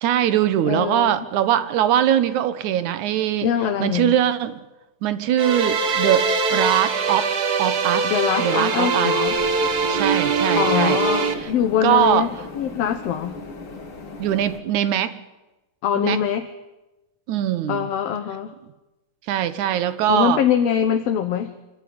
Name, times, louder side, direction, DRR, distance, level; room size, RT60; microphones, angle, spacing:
voice 1, 0.0-3.5 3.8-4.6 5.0-7.3 7.6-8.1 8.4-9.1 9.9-11.0 11.4-11.5 11.8-12.3 14.2-15.1 16.0-16.2 17.3-17.9 19.3-20.4, right 11 dB, 75° right, 12 dB, 2.4 m, -21 dB
voice 2, 0.7-1.2 3.4-4.2 8.0-9.4 10.6-12.3 12.6-13.4 15.8-16.5 17.7-18.5 20.1-21.6, left 9 dB, 65° left, 7 dB, 1.8 m, -23 dB
sound 1, 5.4-11.3, right 4 dB, 50° right, 1.3 m, -22 dB
sound 2, 9.3-14.6, left 3 dB, 40° left, 3.4 m, -38 dB
25.0 x 14.5 x 9.5 m, 1.1 s
omnidirectional pair, 3.6 m